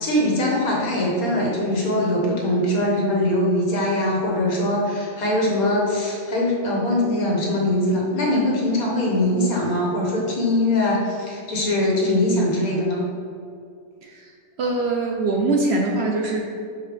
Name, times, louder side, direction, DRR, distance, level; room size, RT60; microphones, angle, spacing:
voice 1, 0.0-13.1, left 1 dB, 75° left, -3 dB, 1.7 m, -22 dB
voice 2, 14.0-14.3 14.6-16.4, right 2 dB, 60° right, 0 dB, 0.7 m, -23 dB
6.2 x 4.7 x 3.4 m, 2.3 s
omnidirectional pair, 1.5 m